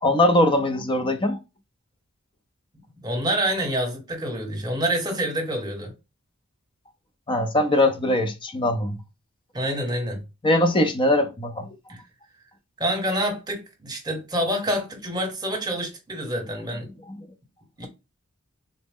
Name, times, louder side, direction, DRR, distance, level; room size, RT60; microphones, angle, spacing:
voice 1, 0.0-1.4 7.3-9.0 10.4-11.7, left 1 dB, 25° left, 0.5 m, -21 dB
voice 2, 3.0-5.9 9.5-10.2 11.9-12.0 12.8-16.9 17.8-17.9, right 1 dB, 20° right, 1.2 m, -27 dB
3.9 x 2.1 x 3.5 m
head